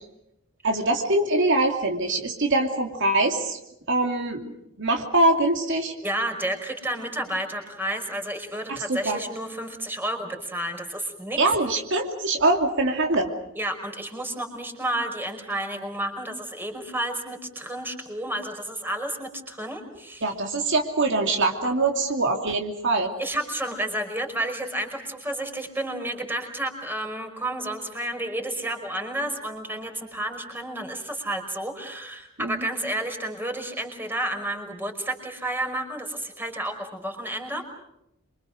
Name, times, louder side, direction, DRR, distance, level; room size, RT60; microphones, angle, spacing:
voice 1, 0.6-3.6 3.9-5.9 8.7-9.2 11.4-13.3 20.2-23.1 32.4-32.6, right 2 dB, 60° right, 3 dB, 2.7 m, -23 dB
voice 2, 6.0-11.4 13.5-20.2 21.6-21.7 23.2-37.6, right 1 dB, 10° right, 4 dB, 5.2 m, -31 dB
27.5 x 24.5 x 6.4 m, 0.82 s
head